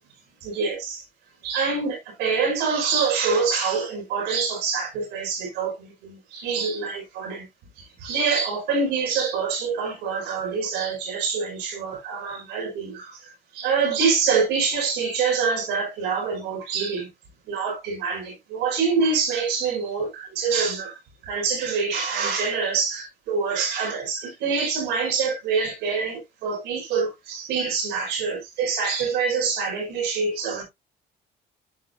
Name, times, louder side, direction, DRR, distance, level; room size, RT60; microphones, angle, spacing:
voice 1, 0.4-1.0 1.4-7.4 7.8-17.1 17.5-21.0 21.2-30.6, right 5 dB, 90° right, 4.8 m, -25 dB
12.0 x 5.5 x 2.5 m
cardioid pair, 110°, 17 cm